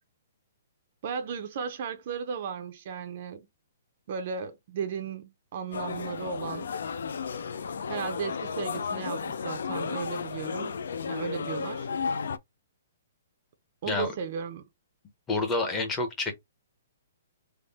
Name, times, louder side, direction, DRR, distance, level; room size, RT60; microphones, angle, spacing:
voice 1, 1.0-3.5 4.1-6.7 7.9-10.8 11.1-11.9 13.8-14.7, right 6 dB, 35° right, 0.5 m, -35 dB
sound 1, 5.7-12.4, left 6 dB, 70° left, 0.4 m, -33 dB
voice 2, 15.3-16.3, left 3 dB, 10° left, 0.6 m, -28 dB
3.5 x 2.0 x 4.0 m
hypercardioid pair, 175°, 0 cm